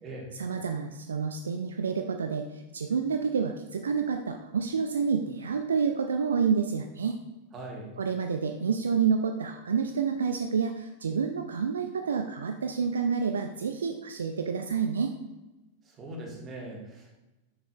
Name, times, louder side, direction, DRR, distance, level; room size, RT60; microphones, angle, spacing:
voice 1, 0.3-7.2 8.0-15.1, right 6 dB, 70° right, 5 dB, 0.4 m, -29 dB
voice 2, 7.5-7.9 15.9-17.2, right 1 dB, 25° right, -2 dB, 1.8 m, -41 dB
7.1 x 6.7 x 2.5 m, 1.0 s
figure-of-eight pair, 90°, 0 cm